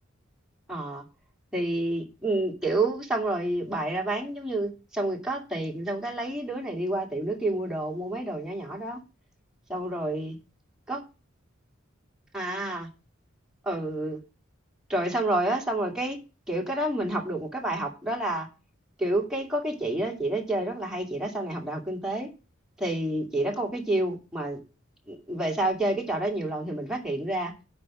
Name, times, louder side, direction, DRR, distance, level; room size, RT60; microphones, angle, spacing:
voice 1, 0.7-1.0 1.5-9.0 9.7-10.4 10.9-11.0 12.3-12.9 13.6-14.2 14.9-16.2 16.5-18.5 19.0-22.3 22.8-24.6 25.1-27.5, right 1 dB, 5° right, 2.2 m, -29 dB
8.7 x 5.5 x 7.3 m
head